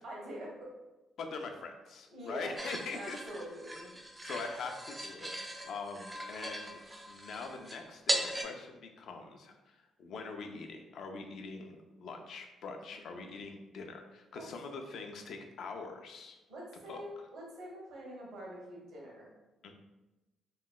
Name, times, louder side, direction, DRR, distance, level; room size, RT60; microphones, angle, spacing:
voice 1, 0.0-0.7 2.1-2.6 2.9-3.9 12.9-13.2 14.3-14.4 16.5-19.3, equal, 80° right, -4 dB, 1.2 m, -45 dB
voice 2, 1.2-3.2 4.2-6.7 7.1-16.4 16.9-17.0 19.6-19.7, left 4 dB, 70° left, 4 dB, 0.4 m, -43 dB
sound 1, 2.6-8.4, right 1 dB, 15° right, 0.4 m, -39 dB
3.0 x 2.8 x 2.3 m, 1.1 s
cardioid pair, 90°, 0 cm